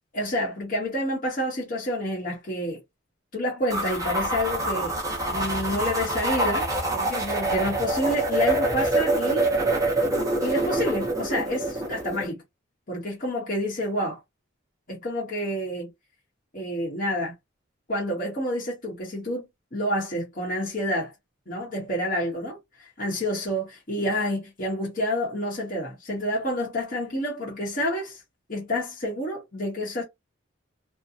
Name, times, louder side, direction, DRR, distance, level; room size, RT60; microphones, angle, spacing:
voice 1, 0.1-2.8 3.3-5.0 5.3-9.5 10.4-12.4 12.9-14.2 14.9-15.9 16.5-17.3 17.9-19.5 19.7-21.1 21.5-22.6 23.0-28.2 28.5-30.0, equal, 40° left, 0.9 m, -28 dB
sound 1, 3.7-12.3, right 2 dB, 15° right, 0.7 m, -26 dB
2.7 x 2.1 x 2.4 m
head